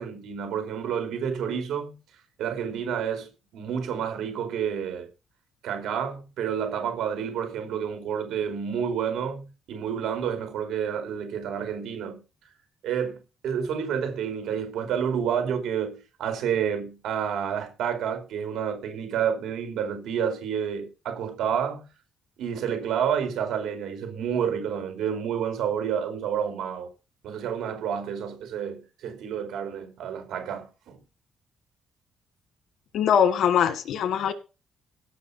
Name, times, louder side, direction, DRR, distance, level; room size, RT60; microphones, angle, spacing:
voice 1, 0.0-2.0 2.4-5.1 5.6-12.2 12.8-13.2 13.4-21.9 22.4-26.9 27.2-31.0, right 8 dB, 90° right, 4.8 m, -29 dB
voice 2, 32.9-34.3, left 8 dB, 70° left, 1.8 m, -22 dB
16.5 x 6.0 x 5.9 m
cardioid pair, 115°, 0 cm